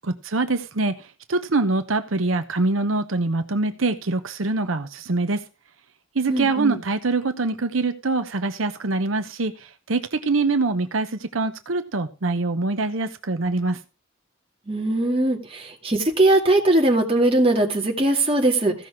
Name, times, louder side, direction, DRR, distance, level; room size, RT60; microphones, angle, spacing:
voice 1, 0.0-0.9 1.3-5.4 6.1-9.5 9.9-13.8, right 3 dB, 80° right, 8 dB, 0.9 m, -24 dB
voice 2, 6.3-6.8 14.7-18.7, right 1 dB, 30° right, 1 dB, 2.2 m, -20 dB
15.5 x 6.0 x 4.8 m, 0.31 s
head